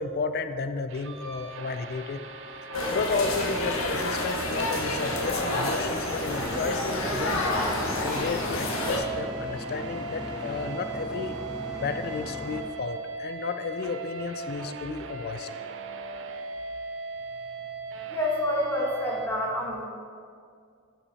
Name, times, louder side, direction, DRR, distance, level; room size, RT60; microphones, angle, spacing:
voice 1, 0.0-2.2 2.9-7.4 8.0-11.4 11.8-15.5, left 4 dB, 50° left, 10 dB, 0.4 m, -32 dB
sound 1, 0.9-19.3, right 3 dB, 65° right, 0.6 m, -38 dB
sound 2, 2.7-9.0, left 2 dB, 80° left, 1.4 m, -29 dB
sound 3, 6.2-12.6, left 1 dB, 5° right, 1.1 m, -39 dB
voice 2, 18.1-19.8, left 1 dB, 10° left, -4 dB, 1.7 m, -28 dB
11.0 x 5.8 x 4.2 m, 2.2 s
head